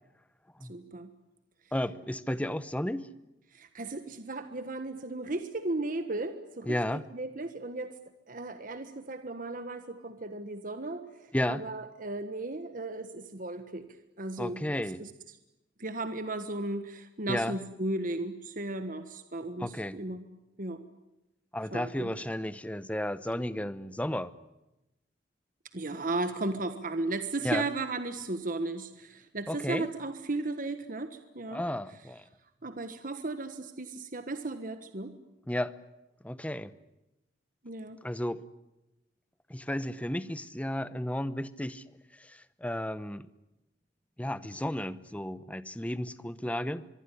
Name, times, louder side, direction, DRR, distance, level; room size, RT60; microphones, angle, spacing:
voice 1, 0.6-1.1 3.5-6.7 7.1-8.0 8.3-13.9 14.2-14.6 15.0-15.1 15.8-20.3 20.6-20.8 21.7-22.1 25.7-31.6 32.6-35.1 37.6-38.0, right 2 dB, 50° right, 9 dB, 1.4 m, -35 dB
voice 2, 1.7-3.1 6.7-7.0 11.3-11.6 14.4-15.0 17.3-17.6 19.6-20.0 21.5-24.3 27.4-27.6 29.5-29.9 31.5-32.2 35.5-35.7 36.2-36.7 38.0-38.4 39.5-41.8 42.1-43.3 44.2-46.9, left 1 dB, 10° left, 15 dB, 0.9 m, -33 dB
24.0 x 23.5 x 10.0 m, 0.94 s
head